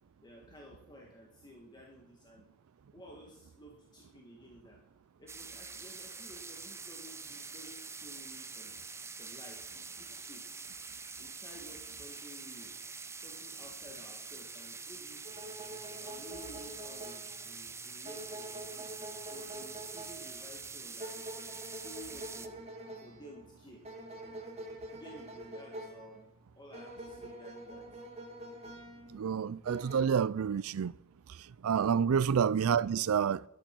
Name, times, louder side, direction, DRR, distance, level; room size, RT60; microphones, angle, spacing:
voice 1, 0.2-2.5 2.9-4.8 5.2-8.7 9.2-10.5 11.2-12.7 13.2-15.2 16.0-21.1 21.7-22.6 23.0-23.9 24.9-26.2 26.6-27.9 31.9-32.1, equal, 20° left, 1.9 m, -53 dB
sound 1, 5.3-22.5, right 4 dB, 15° right, 0.7 m, -45 dB
sound 2, 15.2-30.0, right 1 dB, 30° right, 2.2 m, -47 dB
voice 2, 29.1-30.9 31.3-33.4, right 7 dB, 75° right, 0.4 m, -29 dB
13.5 x 11.5 x 6.0 m
head